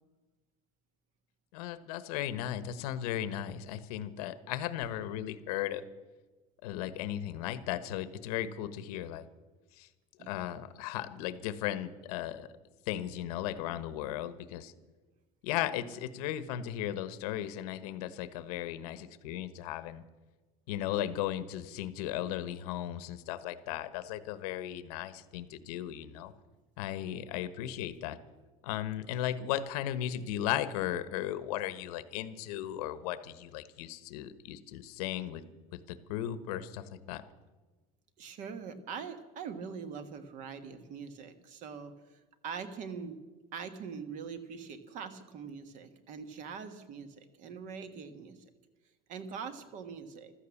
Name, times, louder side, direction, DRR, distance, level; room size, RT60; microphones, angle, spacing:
voice 1, 1.5-5.8 6.6-9.3 9.7-9.9 10.3-12.5 12.9-14.7 15.4-20.0 20.7-26.3 26.8-28.2 28.6-35.4 35.7-37.2, left 12 dB, 85° left, 14 dB, 1.2 m, -36 dB
voice 2, 38.2-43.2 43.5-48.5 49.1-50.3, right 6 dB, 45° right, 10 dB, 1.5 m, -43 dB
15.0 x 13.5 x 7.2 m, 1.2 s
cardioid pair, 165°, 19 cm